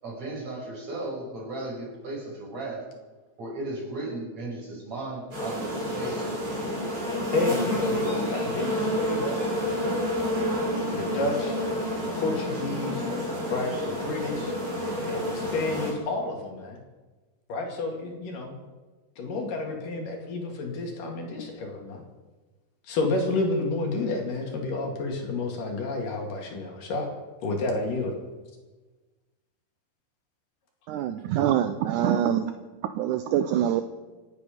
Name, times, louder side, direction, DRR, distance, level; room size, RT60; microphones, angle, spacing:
voice 1, 0.0-2.9 3.4-6.8 7.9-8.0, right 2 dB, 45° right, -3 dB, 6.8 m, -36 dB
sound 1, 5.3-15.9, equal, 25° right, 5.7 m, -29 dB
voice 2, 7.3-10.3 10.9-11.6 12.1-13.1 13.5-14.5 15.1-16.8 17.5-18.6 19.2-22.0 22.8-27.1 27.4-28.1, left 2 dB, 65° left, 1 dB, 3.8 m, -30 dB
voice 3, 30.9-32.5 32.8-33.8, right 10 dB, 80° right, 9 dB, 1.8 m, -25 dB
27.5 x 9.8 x 5.1 m, 1.2 s
omnidirectional pair, 4.2 m